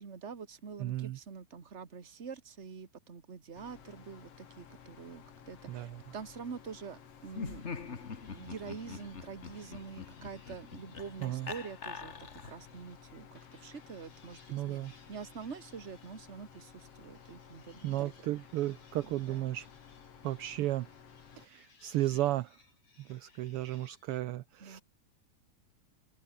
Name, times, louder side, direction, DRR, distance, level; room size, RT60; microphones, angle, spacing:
voice 1, 0.0-7.6 8.3-18.1 19.0-19.5 24.6-24.8, right 6 dB, 30° right, 1.7 m, -46 dB
voice 2, 0.8-1.2 5.7-6.0 11.2-11.5 14.5-14.9 17.8-19.7 20.2-20.9 21.4-22.6 23.0-24.8, right 15 dB, 80° right, 1.2 m, -34 dB
sound 1, 3.5-21.5, left 7 dB, 55° left, 3.1 m, -55 dB
sound 2, 7.3-13.0 13.4-24.2, left 4 dB, 75° left, 8.0 m, -65 dB
Laughter, 7.3-12.7, left 5 dB, 35° left, 1.3 m, -44 dB
open air
omnidirectional pair, 3.3 m